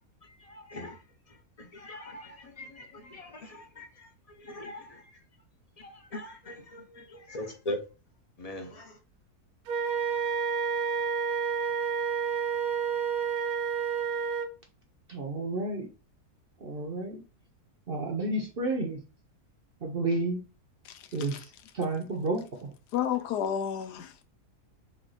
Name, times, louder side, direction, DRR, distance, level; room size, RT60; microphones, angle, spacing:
voice 1, 0.2-1.0 1.3-4.1 4.4-5.1 5.8-7.8 8.4-9.0, left 1 dB, 35° left, 0.6 m, -41 dB
Wind instrument woodwind instrument, 9.7-14.5, right 6 dB, 75° right, 1.2 m, -29 dB
voice 2, 15.1-15.9 16.6-17.2 17.9-19.0 19.8-20.4 21.1-22.7, right 2 dB, 50° right, 0.8 m, -31 dB
voice 3, 22.9-24.2, left 9 dB, 85° left, 1.2 m, -30 dB
3.6 x 3.4 x 3.9 m
omnidirectional pair, 1.7 m